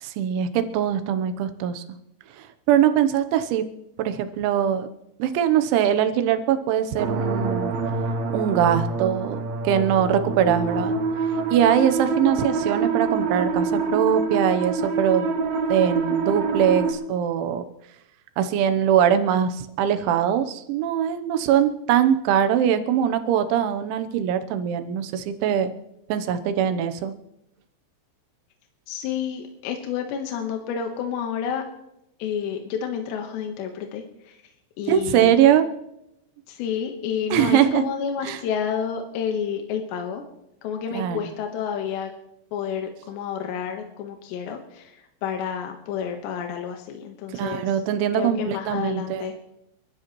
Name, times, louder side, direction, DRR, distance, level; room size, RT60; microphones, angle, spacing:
voice 1, 0.0-1.8 2.4-3.7 4.0-4.9 5.2-7.7 8.3-10.9 11.5-15.4 15.7-17.6 18.4-25.7 26.1-27.1 34.9-35.7 37.3-37.8 38.3-38.4 40.9-41.2 47.4-49.3, right 9 dB, 90° right, 9 dB, 3.3 m, -22 dB
sound 1, 7.0-16.9, right 4 dB, 55° right, 2.2 m, -26 dB
voice 2, 28.9-31.6 32.2-34.4 34.8-35.4 36.5-40.2 40.6-42.1 42.5-47.8 48.1-49.3, left 7 dB, 80° left, 4 dB, 3.3 m, -30 dB
30.0 x 13.0 x 3.1 m, 0.84 s
omnidirectional pair, 5.2 m